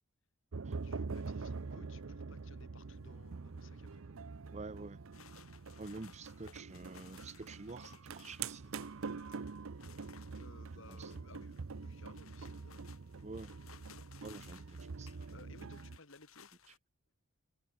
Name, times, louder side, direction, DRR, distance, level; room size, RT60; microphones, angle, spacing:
sound 1, 0.5-16.0, right 4 dB, 75° right, 0.7 m, -45 dB
voice 1, 0.7-4.0 10.4-12.8 15.3-16.5, left 3 dB, 65° left, 2.7 m, -59 dB
voice 2, 4.5-5.0 5.8-8.7 10.9-11.1 13.2-13.5 14.2-15.3, right 3 dB, 35° right, 0.7 m, -48 dB
sound 2, 5.1-16.8, left 7 dB, 90° left, 7.2 m, -61 dB
head